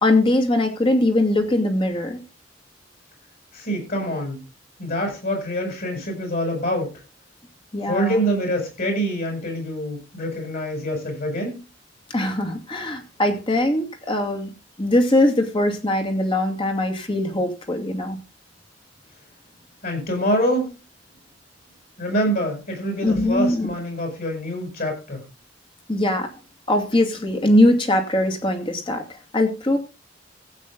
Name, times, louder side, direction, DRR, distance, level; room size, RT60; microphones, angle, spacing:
voice 1, 0.0-2.2 7.7-8.2 12.1-14.5 14.8-18.2 23.0-23.7 25.9-26.3 26.7-29.8, left 1 dB, 25° left, 3 dB, 2.4 m, -21 dB
voice 2, 3.5-4.4 4.8-6.9 7.9-11.6 19.8-20.7 22.0-25.2, equal, 50° left, 2 dB, 7.8 m, -25 dB
15.5 x 8.7 x 3.9 m, 0.31 s
head